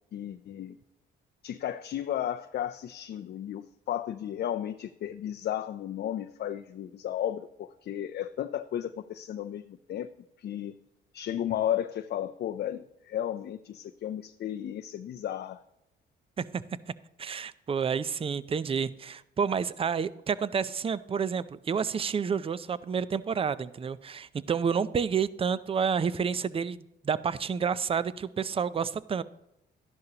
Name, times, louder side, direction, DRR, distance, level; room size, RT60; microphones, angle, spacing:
voice 1, 0.1-0.8 1.4-10.1 10.4-10.8 11.1-15.6, left 11 dB, 55° left, 0.5 m, -34 dB
voice 2, 17.2-29.2, right 6 dB, 30° right, 0.5 m, -29 dB
12.5 x 10.5 x 2.9 m
cardioid pair, 90°, 20 cm